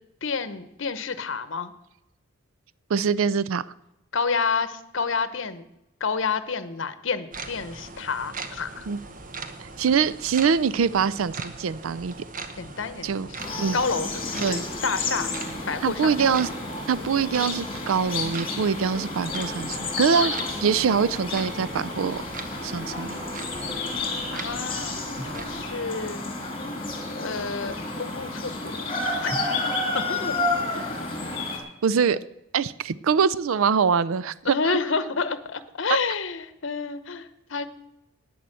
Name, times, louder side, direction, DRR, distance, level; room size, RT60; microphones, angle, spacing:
voice 1, 0.2-1.7 4.1-5.6 6.0-8.9 12.6-13.4 13.7-15.3 15.7-16.4 24.3-26.2 27.1-28.9 29.2-29.3 29.9-30.4 30.9-31.5 32.0-32.2 34.4-37.7, left 4 dB, 60° left, 13 dB, 0.9 m, -29 dB
voice 2, 2.9-3.6 8.9-9.0 9.8-12.1 13.0-13.3 13.6-13.8 14.4-14.7 15.8-16.5 16.9-22.2 22.6-23.4 31.8-32.2 32.5-34.8, right 6 dB, 75° right, 18 dB, 0.4 m, -24 dB
sound 1, 7.3-25.8, right 3 dB, 40° right, 1.0 m, -41 dB
sound 2, 13.4-31.6, left 3 dB, 25° left, 2.8 m, -31 dB
Drum, 25.2-26.7 29.3-31.5, equal, 10° right, 4.3 m, -44 dB
11.0 x 9.4 x 7.6 m, 0.89 s
head